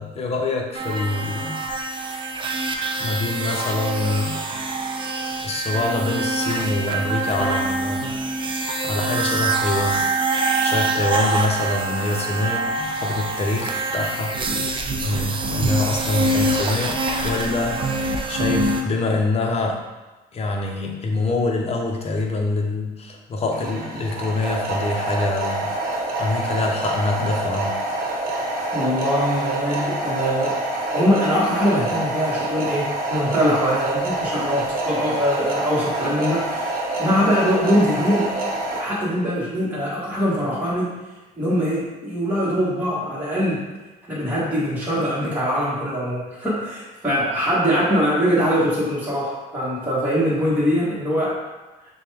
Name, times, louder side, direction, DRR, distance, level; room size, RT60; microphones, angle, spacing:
voice 1, 0.0-1.7 3.0-4.4 5.4-8.1 8.8-10.1 10.6-14.4 15.0-18.0 18.3-19.8 20.3-25.7 26.2-27.8, left 3 dB, 35° left, 1 dB, 0.8 m, -25 dB
sound 1, 0.7-18.8, right 2 dB, 30° right, 0.5 m, -25 dB
sound 2, 23.5-38.8, right 2 dB, 60° right, 0.9 m, -26 dB
voice 2, 28.7-38.3 38.7-40.9 41.4-43.6 44.1-51.3, equal, 10° right, -8 dB, 1.4 m, -22 dB
6.5 x 2.3 x 3.4 m, 1.1 s
cardioid pair, 110°, 17 cm